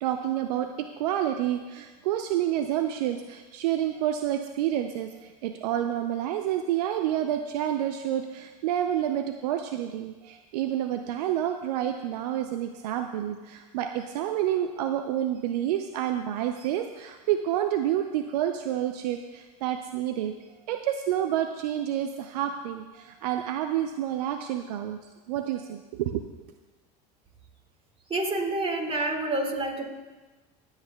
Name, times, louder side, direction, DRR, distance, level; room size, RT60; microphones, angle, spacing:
voice 1, 0.0-20.3 20.7-25.0 25.3-26.3, right 11 dB, 75° right, 7 dB, 0.5 m, -29 dB
voice 2, 28.1-29.9, right 2 dB, 30° right, 3 dB, 1.9 m, -28 dB
23.5 x 8.1 x 2.2 m, 1.3 s
hypercardioid pair, 80°, 20 cm